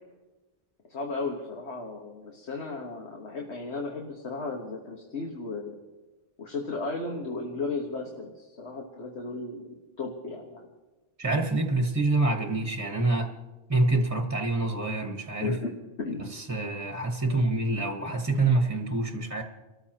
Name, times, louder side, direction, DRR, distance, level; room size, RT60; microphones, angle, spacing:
voice 1, 0.9-5.8 6.4-10.7 15.4-15.7 16.0-16.2 17.2-17.5, left 3 dB, 90° left, 1 dB, 1.7 m, -35 dB
voice 2, 11.2-13.3 13.7-15.5 16.3-19.4, right 2 dB, 15° right, 3 dB, 1.2 m, -26 dB
29.5 x 14.0 x 3.0 m, 1.2 s
omnidirectional pair, 1.1 m